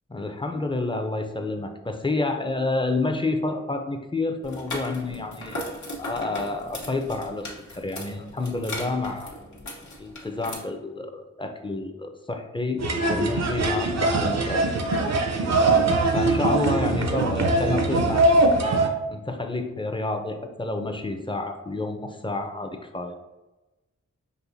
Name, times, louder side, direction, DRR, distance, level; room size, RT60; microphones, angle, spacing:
voice 1, 0.1-5.7 6.0-9.3 10.0-14.7 16.1-18.3 19.1-23.2, left 2 dB, 15° left, 6 dB, 0.6 m, -29 dB
sound 1, 4.4-10.5, left 1 dB, 65° left, 1.1 m, -37 dB
sound 2, 12.8-18.9, right 2 dB, 60° right, 0.6 m, -22 dB
5.3 x 2.6 x 2.6 m, 1.0 s
cardioid pair, 40°, 30 cm